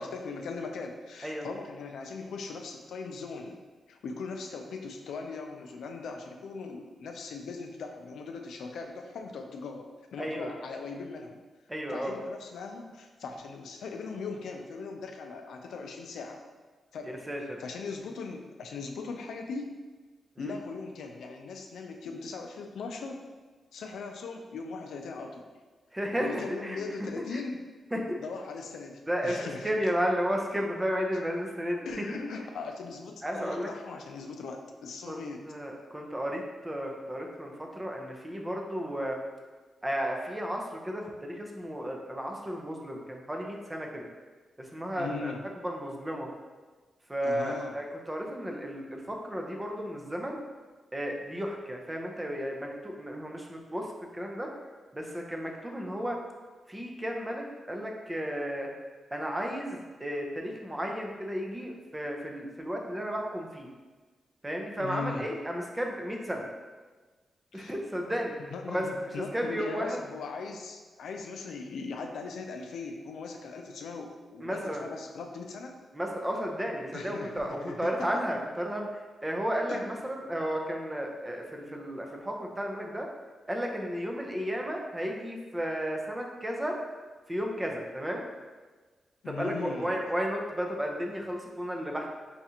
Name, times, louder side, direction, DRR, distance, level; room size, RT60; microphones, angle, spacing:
voice 1, 0.0-11.4 11.9-16.4 16.9-17.1 17.6-19.7 20.4-23.2 23.7-25.5 26.2-27.6 28.2-29.7 31.9-35.4 45.0-45.4 47.2-47.7 64.8-65.3 67.5-67.7 68.4-75.8 76.9-78.1 79.7-79.8 89.2-90.0, left 4 dB, 85° left, 4 dB, 0.4 m, -39 dB
voice 2, 10.2-10.5 11.7-12.1 17.0-17.6 20.4-20.6 25.9-26.8 27.3-27.4 27.9-28.2 29.1-32.0 33.2-33.7 35.1-39.2 39.8-44.1 44.6-45.3 45.6-46.3 47.1-50.4 50.9-54.5 54.9-56.2 56.7-58.7 59.1-63.7 64.4-66.5 67.5-68.4 68.7-68.9 69.3-70.0 74.4-74.9 75.9-83.1 83.5-86.8 87.3-88.2 89.3-92.2, equal, 10° right, 1 dB, 0.5 m, -33 dB
5.3 x 2.4 x 2.8 m, 1.3 s
wide cardioid pair, 135°, 0 cm